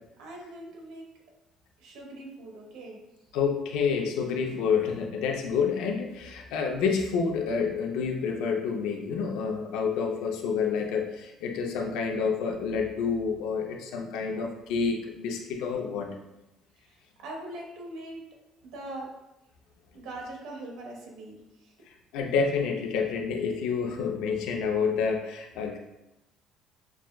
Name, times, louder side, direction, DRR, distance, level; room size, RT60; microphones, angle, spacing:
voice 1, 0.2-1.1 1.8-3.0 16.8-18.3 18.6-19.1 19.9-21.7, right 1 dB, 80° right, 0 dB, 0.9 m, -42 dB
voice 2, 3.3-16.2 22.1-25.8, left 5 dB, 85° left, 2 dB, 0.5 m, -28 dB
6.0 x 2.2 x 2.2 m, 0.92 s
cardioid pair, 175°, 0 cm